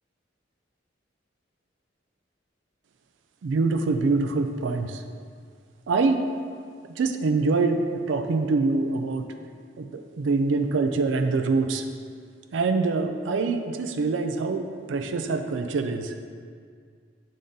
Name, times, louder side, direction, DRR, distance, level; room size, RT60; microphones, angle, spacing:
voice 1, 3.4-5.0 5.9-6.2 7.0-9.2 9.8-11.8 12.5-16.1, right 3 dB, 85° right, 6 dB, 0.4 m, -25 dB
6.8 x 3.8 x 3.8 m, 2.1 s
head